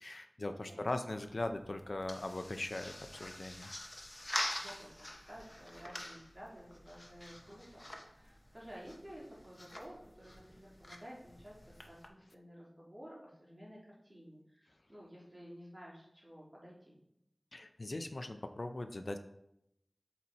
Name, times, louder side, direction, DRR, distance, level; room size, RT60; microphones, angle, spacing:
voice 1, 0.0-3.7 17.5-19.2, left 2 dB, 60° left, 8 dB, 0.5 m, -40 dB
sound 1, 1.2-12.1, left 1 dB, 30° left, 0.9 m, -46 dB
voice 2, 4.6-11.6 11.8-17.0, equal, 30° right, -6 dB, 2.9 m, -53 dB
7.5 x 4.2 x 4.2 m, 0.79 s
wide cardioid pair, 60°, 0 cm